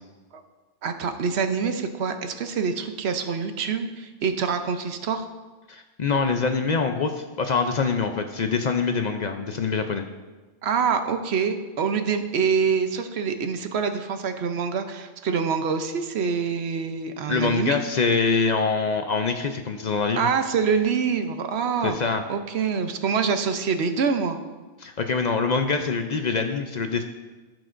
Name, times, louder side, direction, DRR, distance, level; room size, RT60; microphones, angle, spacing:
voice 1, 0.8-5.3 10.6-17.8 20.2-21.9 22.3-24.4, right 6 dB, 65° right, 8 dB, 0.9 m, -25 dB
voice 2, 5.7-10.0 17.3-20.3 21.8-22.2 24.8-27.0, left 5 dB, 55° left, 6 dB, 0.5 m, -24 dB
15.5 x 6.1 x 2.5 m, 1.3 s
omnidirectional pair, 1.2 m